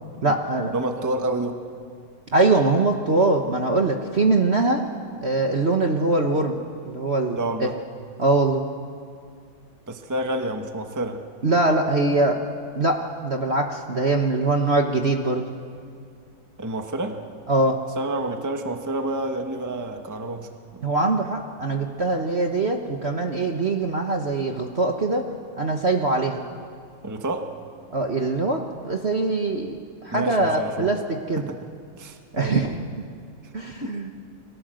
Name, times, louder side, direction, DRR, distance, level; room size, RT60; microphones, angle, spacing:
voice 1, 0.2-0.7 2.3-4.8 5.2-6.6 6.8-7.7 8.2-8.6 11.4-12.4 12.7-15.4 17.5-17.8 20.8-25.2 25.6-26.4 27.9-31.5 32.3-32.7 33.5-34.1, right 2 dB, 35° right, 3 dB, 1.3 m, -22 dB
voice 2, 0.7-1.6 7.3-7.8 9.9-11.2 16.6-17.2 18.0-20.8 27.0-27.5 30.1-30.9 31.4-31.6 32.0-32.6 33.8-34.0, right 2 dB, 10° right, 5 dB, 1.2 m, -29 dB
30.0 x 22.5 x 7.8 m, 2.2 s
omnidirectional pair, 2.3 m